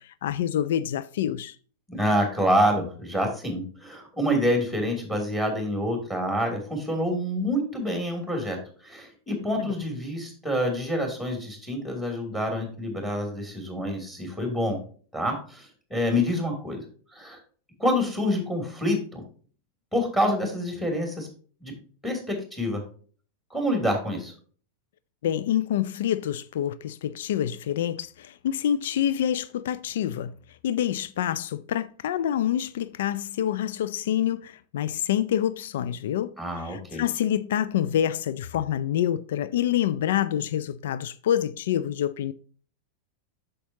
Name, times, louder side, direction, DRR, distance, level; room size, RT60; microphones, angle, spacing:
voice 1, 0.0-1.6 9.6-9.7 25.2-30.3 30.6-42.3, left 10 dB, 55° left, 0.4 m, -27 dB
voice 2, 1.9-14.8 15.1-16.8 17.1-17.4 17.8-19.2 19.9-21.3 21.6-21.7 22.0-22.8 23.5-24.3 36.4-37.0, equal, 10° left, 2.8 m, -27 dB
8.4 x 6.5 x 2.8 m
figure-of-eight pair, 90°, 0 cm